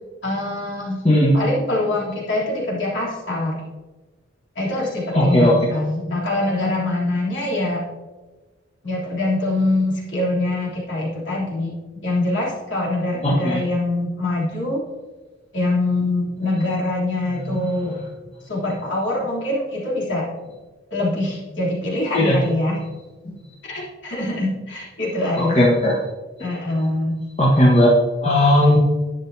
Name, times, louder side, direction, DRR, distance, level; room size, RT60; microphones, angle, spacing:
voice 1, 0.2-1.1 1.3-3.6 4.5-7.8 8.8-14.8 15.5-18.0 18.5-20.3 20.9-22.8 23.6-25.6 26.4-27.2, left 2 dB, 70° left, -5 dB, 3.3 m, -24 dB
voice 2, 5.1-5.5 13.4-13.6 17.5-17.7 22.1-22.4 25.4-25.9 27.4-27.9 28.2-28.8, left 1 dB, 30° left, -5 dB, 1.5 m, -16 dB
11.5 x 9.1 x 2.8 m, 1.3 s
head